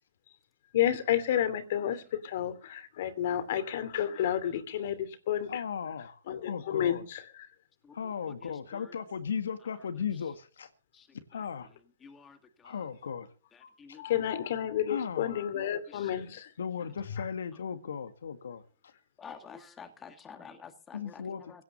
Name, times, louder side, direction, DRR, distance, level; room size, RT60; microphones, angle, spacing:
voice 1, 0.7-5.6 6.3-7.2 14.0-16.5 17.2-17.3, left 10 dB, 55° left, 2.8 m, -30 dB
voice 2, 5.5-6.2 6.5-7.0 7.9-10.7 11.3-11.7 12.6-13.3 13.9-14.0 14.9-15.4 16.6-18.6 20.9-21.6, left 7 dB, 75° left, 1.8 m, -36 dB
voice 3, 12.0-12.4 12.6-12.7 13.8-14.0 15.9-16.1 19.2-21.2 21.5-21.6, left 6 dB, 15° left, 2.0 m, -48 dB
17.0 x 9.3 x 6.9 m
hypercardioid pair, 135°, 0 cm